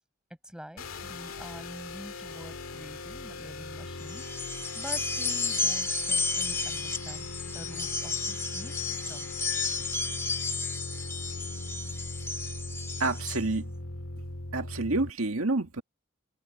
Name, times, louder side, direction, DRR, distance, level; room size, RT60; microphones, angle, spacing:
voice 1, 0.4-9.3, equal, 5° right, 5.9 m, -46 dB
sound 1, 0.8-15.1, left 2 dB, 85° left, 2.1 m, -40 dB
sound 2, 4.0-13.4, left 4 dB, 10° left, 2.8 m, -32 dB
voice 2, 13.0-13.7 14.5-15.8, right 2 dB, 85° right, 2.0 m, -28 dB
open air
head